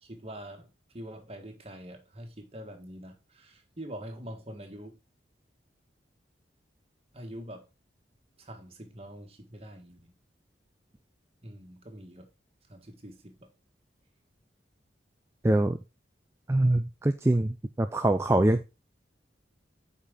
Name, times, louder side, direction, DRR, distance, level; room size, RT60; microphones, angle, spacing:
voice 1, 0.0-0.7 0.9-5.0 7.1-7.6 8.4-10.1 11.4-12.3 12.7-13.5, equal, 30° right, 1.6 m, -44 dB
voice 2, 15.4-15.8 16.5-18.7, right 1 dB, 15° right, 0.4 m, -24 dB
8.5 x 5.1 x 3.6 m
head